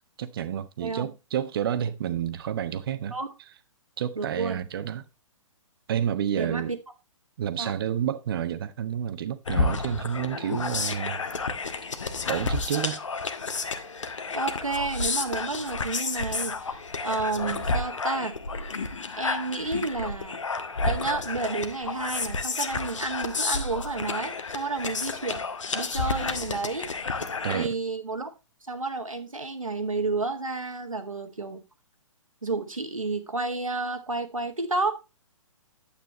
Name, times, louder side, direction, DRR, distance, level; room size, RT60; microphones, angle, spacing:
voice 1, 0.2-3.1 4.0-5.1 5.9-6.7 7.4-11.2 12.3-13.0 27.4-27.7, right 9 dB, 45° right, 1.1 m, -29 dB
voice 2, 4.2-4.6 6.3-6.8 7.6-7.7 14.3-16.8 17.0-18.4 19.1-20.4 20.8-25.4 25.7-27.2 27.5-28.3 28.7-31.6 32.4-35.0, right 3 dB, 80° right, 1.9 m, -31 dB
sound 1, 9.5-27.7, left 3 dB, 65° left, 1.3 m, -31 dB
10.0 x 8.7 x 3.0 m
figure-of-eight pair, 120°, 17 cm